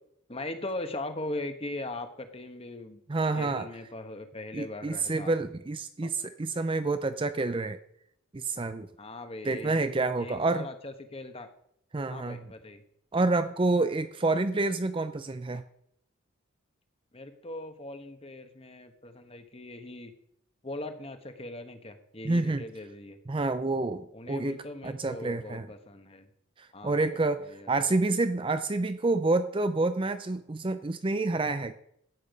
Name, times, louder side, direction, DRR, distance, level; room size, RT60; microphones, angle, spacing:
voice 1, 0.3-3.0 3.3-5.3 6.0-6.1 9.0-9.9 10.2-11.5 12.1-12.8 17.1-20.1 20.6-23.2 24.1-26.3 26.7-27.9, left 2 dB, 25° left, 8 dB, 1.2 m, -40 dB
voice 2, 3.1-3.6 4.5-7.8 8.3-8.9 9.4-10.7 11.9-12.4 13.1-15.6 22.2-22.6 23.3-24.6 24.8-25.7 26.6-31.7, right 3 dB, 25° right, 10 dB, 0.4 m, -28 dB
13.5 x 8.7 x 5.3 m, 0.73 s
head